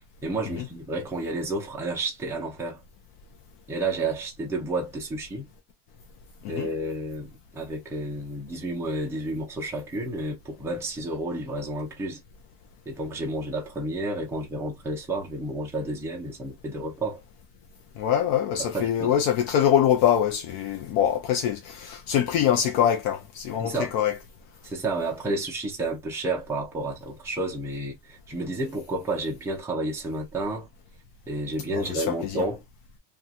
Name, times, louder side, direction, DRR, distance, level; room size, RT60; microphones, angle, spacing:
voice 1, 0.2-2.8 3.7-5.5 6.5-12.2 12.9-17.2 18.6-19.1 23.6-23.9 24.6-30.7 31.3-32.6, right 2 dB, 5° right, 0.6 m, -31 dB
voice 2, 18.0-24.2 31.7-32.5, left 9 dB, 60° left, 0.6 m, -24 dB
2.8 x 2.4 x 2.4 m
cardioid pair, 165°, 48 cm